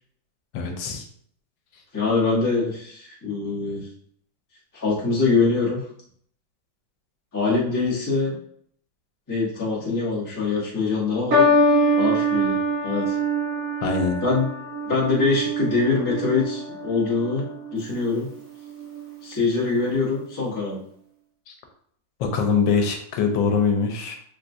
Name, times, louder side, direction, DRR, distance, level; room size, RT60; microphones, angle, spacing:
voice 1, 0.5-1.0 13.8-14.2 21.5-21.6 22.2-24.2, left 5 dB, 90° left, 3 dB, 1.3 m, -23 dB
voice 2, 1.9-3.9 4.7-5.8 7.3-8.4 9.3-11.4 12.0-13.1 14.2-14.5 14.8-17.4 17.7-18.3 19.2-20.8, left 4 dB, 15° left, -7 dB, 0.6 m, -24 dB
sound 1, 11.3-17.8 18.7-19.1, right 1 dB, 60° right, 1.2 m, -24 dB
3.6 x 2.3 x 2.6 m, 0.65 s
omnidirectional pair, 2.0 m